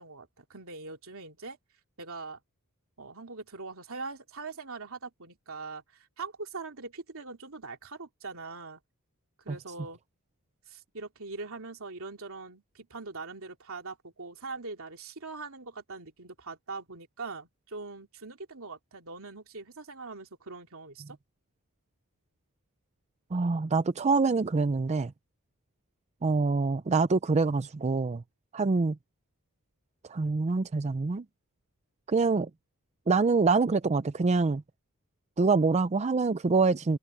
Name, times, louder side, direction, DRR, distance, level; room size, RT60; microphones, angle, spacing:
voice 1, 0.0-1.6 2.0-2.4 3.0-8.8 9.4-10.0 10.7-21.2, right 3 dB, 65° right, 3.0 m, -42 dB
voice 2, 23.3-25.1 26.2-28.2 28.5-29.0 30.1-31.2 32.1-32.5 33.1-34.6 35.4-37.0, right 4 dB, 30° right, 0.5 m, -25 dB
head